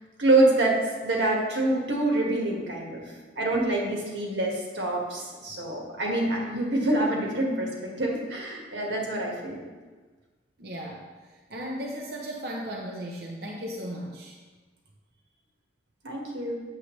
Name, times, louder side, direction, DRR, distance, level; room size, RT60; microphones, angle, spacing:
voice 1, 0.2-3.0 3.4-7.7 8.0-9.6 16.0-16.5, right 2 dB, 80° right, -2 dB, 1.7 m, -26 dB
voice 2, 10.6-11.1 11.5-14.3, equal, 55° right, -1 dB, 0.8 m, -36 dB
8.1 x 7.5 x 3.2 m, 1.3 s
head